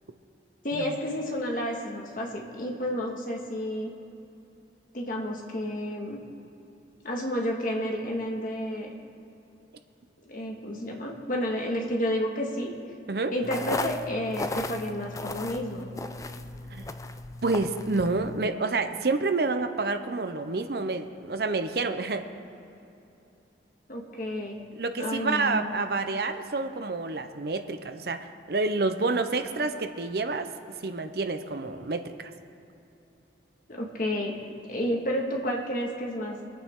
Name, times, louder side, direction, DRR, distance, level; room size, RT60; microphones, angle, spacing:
voice 1, 0.6-3.9 4.9-6.2 7.0-8.9 10.3-12.7 13.3-15.9 23.9-24.6 25.0-25.7 33.7-34.4 34.7-36.4, equal, 50° left, 0 dB, 1.7 m, -31 dB
sound 1, 13.4-18.5, left 2 dB, 20° left, 0.4 m, -36 dB
voice 2, 17.4-22.3 24.7-30.5 30.8-32.3, right 3 dB, 60° right, 8 dB, 0.7 m, -28 dB
24.0 x 8.8 x 3.7 m, 2.9 s
head